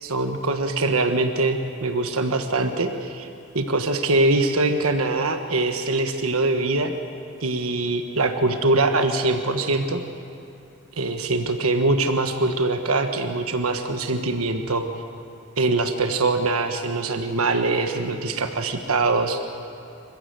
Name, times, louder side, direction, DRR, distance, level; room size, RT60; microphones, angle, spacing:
voice 1, 0.0-3.3 3.5-6.9 7.4-10.0 11.0-14.8 15.6-19.4, right 2 dB, 85° right, 6 dB, 1.4 m, -23 dB
28.5 x 15.0 x 7.7 m, 2.7 s
head